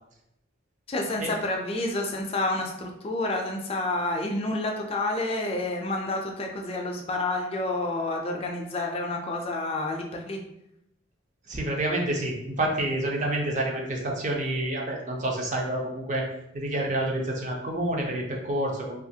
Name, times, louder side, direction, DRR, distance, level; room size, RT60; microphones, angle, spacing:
voice 1, 0.9-10.4, left 2 dB, 30° left, 2 dB, 0.3 m, -29 dB
voice 2, 11.5-16.3 16.5-19.0, right 1 dB, 35° right, 0 dB, 0.5 m, -28 dB
2.9 x 2.4 x 2.7 m, 0.81 s
head